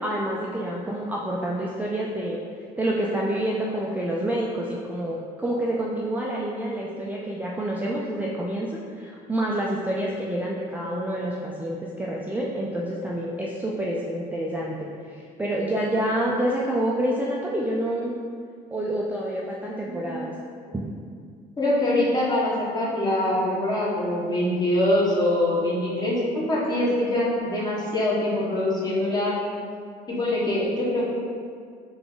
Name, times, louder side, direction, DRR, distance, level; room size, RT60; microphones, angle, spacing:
voice 1, 0.0-2.4 2.8-18.1 18.7-20.3 20.7-20.8, right 1 dB, 10° right, -4 dB, 0.4 m, -28 dB
voice 2, 19.9-20.3 21.6-29.3 30.1-31.0, left 1 dB, 25° left, -6 dB, 1.2 m, -24 dB
3.9 x 3.4 x 3.8 m, 2.2 s
cardioid pair, 110°, 17 cm